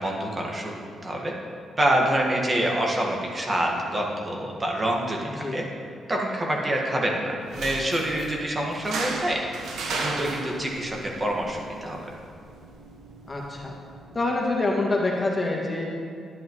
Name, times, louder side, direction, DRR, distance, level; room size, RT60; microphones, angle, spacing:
voice 1, 0.0-1.3 1.8-5.6 6.1-12.0, right 1 dB, 30° right, -1 dB, 1.6 m, -27 dB
sound 1, 7.4-14.4, right 3 dB, 75° right, 1.1 m, -36 dB
voice 2, 13.3-13.7 14.1-15.9, left 2 dB, 25° left, -2 dB, 1.9 m, -26 dB
10.0 x 9.2 x 3.1 m, 2.3 s
supercardioid pair, 60°, 0 cm